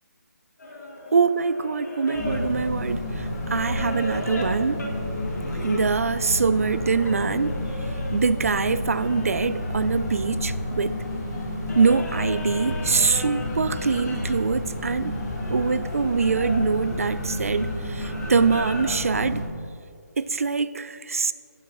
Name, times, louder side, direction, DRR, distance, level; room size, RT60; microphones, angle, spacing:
sound 1, 0.6-8.2 8.6-19.1, left 1 dB, 75° left, 2.7 m, -38 dB
voice 1, 1.1-4.8 5.6-7.5 8.1-11.0 11.8-15.1 15.5-19.4 20.2-21.3, right 5 dB, 55° right, 14 dB, 0.4 m, -24 dB
sound 2, 2.1-19.4, left 1 dB, 15° left, 1.1 m, -31 dB
12.5 x 9.5 x 3.0 m, 2.4 s
hypercardioid pair, 180°, 9 cm